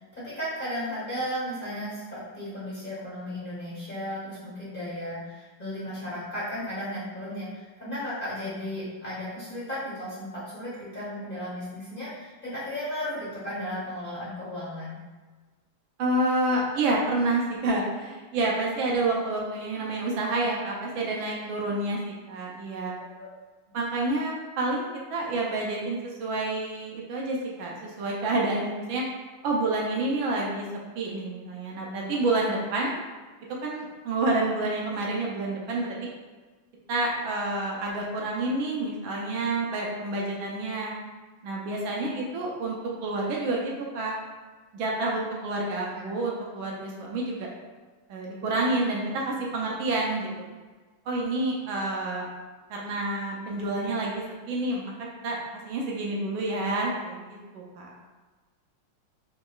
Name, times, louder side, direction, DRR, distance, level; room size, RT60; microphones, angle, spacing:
voice 1, 0.1-15.0 45.8-46.1, equal, 30° left, -9 dB, 1.3 m, -35 dB
voice 2, 16.0-22.9 23.7-29.0 29.4-30.7 31.0-33.0 33.6-36.1 36.9-40.9 41.4-42.8 43.0-44.1 44.7-47.5 48.1-50.3 51.1-52.3 52.7-54.9 55.2-55.4 55.6-57.9, right 2 dB, 75° right, -2 dB, 1.4 m, -28 dB
5.6 x 3.0 x 2.4 m, 1.3 s
omnidirectional pair, 2.3 m